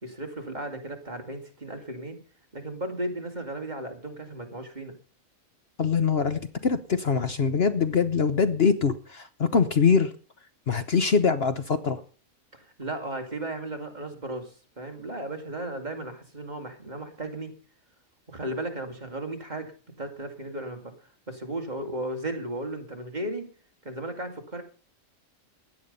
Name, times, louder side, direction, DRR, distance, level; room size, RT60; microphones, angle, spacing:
voice 1, 0.0-2.2 2.5-4.9 12.5-17.5 18.3-19.7 20.0-23.5 23.8-24.6, right 1 dB, 30° right, 4 dB, 2.7 m, -35 dB
voice 2, 5.8-10.1 10.7-12.0, left 5 dB, 50° left, 11 dB, 1.1 m, -23 dB
16.5 x 10.5 x 5.4 m, 0.39 s
omnidirectional pair, 1.4 m